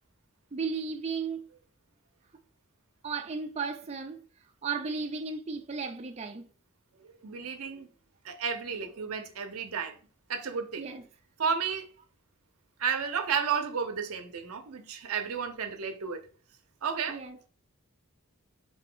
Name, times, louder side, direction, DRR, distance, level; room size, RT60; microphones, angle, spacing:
voice 1, 0.5-1.4 3.0-4.2 4.6-6.4 10.8-11.0 17.1-17.4, right 5 dB, 30° right, 0.5 m, -34 dB
voice 2, 7.0-7.9 8.2-10.0 10.3-10.9 11.4-11.9 12.8-16.2 16.8-17.2, right 6 dB, 85° right, 0.6 m, -32 dB
4.0 x 2.8 x 3.8 m
head